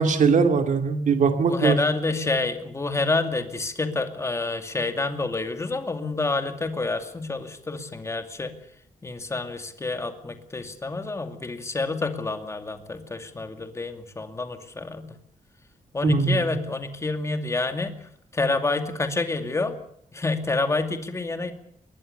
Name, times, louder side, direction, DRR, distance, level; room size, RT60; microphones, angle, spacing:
voice 1, 0.0-1.8 16.0-16.5, right 5 dB, 70° right, 6 dB, 2.6 m, -21 dB
voice 2, 1.5-8.5 9.0-15.1 15.9-18.0 18.3-19.7 20.1-21.5, left 3 dB, 20° left, 7 dB, 2.4 m, -28 dB
22.0 x 21.0 x 6.8 m, 0.70 s
wide cardioid pair, 165°, 13 cm